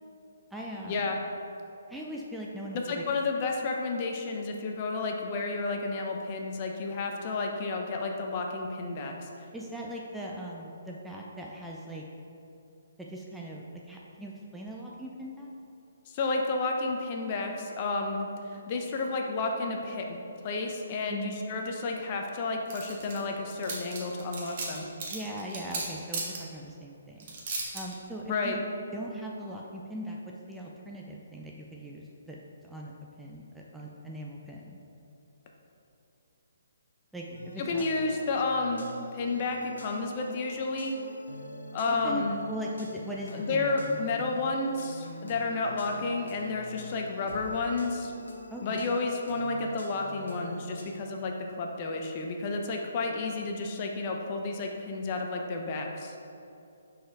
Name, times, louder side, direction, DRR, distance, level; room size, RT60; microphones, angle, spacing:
voice 1, 0.5-1.1 1.9-3.0 9.5-12.0 13.0-15.5 21.1-21.4 25.1-27.3 27.7-28.6 28.9-30.2 30.5-32.4 32.6-32.9 33.2-34.8 37.1-37.3 37.5-37.8 41.9-44.5 48.5-49.0, equal, 5° right, -3 dB, 0.4 m, -40 dB
voice 2, 2.7-9.3 16.1-24.8 28.3-28.6 37.6-40.9 41.7-42.4 43.3-48.1 48.6-56.1, left 3 dB, 35° left, 2 dB, 0.6 m, -31 dB
sound 1, 22.7-23.2 23.5-26.4 27.2-27.9, right 4 dB, 45° right, 1.2 m, -35 dB
sound 2, 37.3-50.8, left 1 dB, 75° left, 1.1 m, -45 dB
5.0 x 4.2 x 4.5 m, 2.7 s
hypercardioid pair, 145°, 0 cm